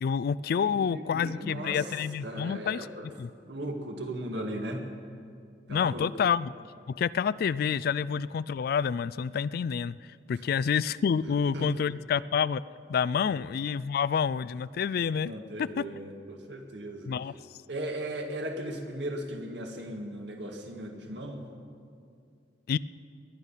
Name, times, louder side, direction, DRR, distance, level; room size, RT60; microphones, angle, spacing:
voice 1, 0.0-3.3 5.7-6.5 6.9-10.0 10.3-12.6 12.9-15.3 15.6-15.8 17.1-17.3 22.7-22.8, left 7 dB, 55° left, 18 dB, 0.3 m, -28 dB
voice 2, 0.6-1.9 2.2-3.1 3.4-4.9 5.7-6.1 11.2-11.7 13.2-13.4 15.2-17.2 17.7-21.4, right 1 dB, 70° right, 3 dB, 1.8 m, -37 dB
20.5 x 11.0 x 5.6 m, 2.3 s
head